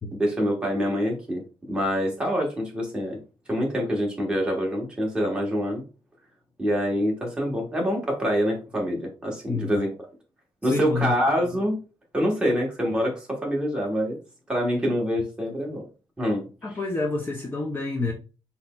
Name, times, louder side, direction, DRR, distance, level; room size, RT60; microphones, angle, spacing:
voice 1, 0.2-3.2 3.5-5.8 6.6-9.9 10.6-11.8 12.1-14.2 14.5-15.8 16.2-16.4, equal, 10° right, -2 dB, 1.2 m, -25 dB
voice 2, 9.5-9.8 10.6-11.2 16.6-18.1, left 3 dB, 20° left, 1 dB, 0.5 m, -28 dB
4.1 x 4.0 x 2.2 m, 0.33 s
wide cardioid pair, 180°, 10 cm